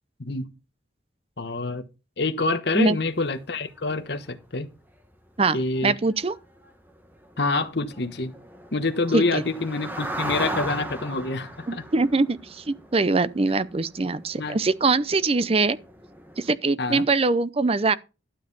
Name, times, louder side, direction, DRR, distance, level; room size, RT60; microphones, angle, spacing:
voice 1, 0.2-0.5 1.4-1.9 2.2-4.7 5.5-6.0 7.4-8.3 8.7-11.8 14.4-14.6 16.8-17.1, left 3 dB, 60° left, 1.2 m, -27 dB
sound 1, 2.8-2.9 3.3-3.4 3.6-3.8 4.2-4.5 4.9-5.0 5.4-5.5 5.7-5.8 6.1-16.5, right 1 dB, 10° right, 1.5 m, -38 dB
voice 2, 5.8-6.3 9.1-9.4 11.7-15.8 16.4-18.0, right 3 dB, 30° right, 0.6 m, -23 dB
12.5 x 7.2 x 4.0 m
head